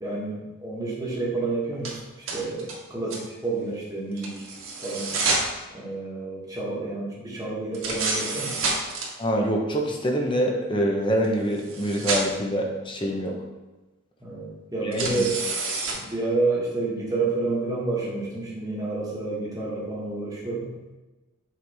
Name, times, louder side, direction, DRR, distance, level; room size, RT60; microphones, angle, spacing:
voice 1, 0.0-4.5 4.8-5.4 5.7-8.6 14.2-15.4 15.9-20.7, right 3 dB, 15° right, -5 dB, 1.5 m, -29 dB
sound 1, 1.8-1.9 2.3-2.8 3.1-3.2 4.2-5.5 7.7-9.1 11.2-11.3 11.6-12.3 14.9-15.9, right 3 dB, 80° right, 1.6 m, -28 dB
voice 2, 9.2-13.3 14.8-15.3, equal, 25° left, 0 dB, 0.9 m, -25 dB
6.8 x 4.8 x 3.5 m, 1.1 s
head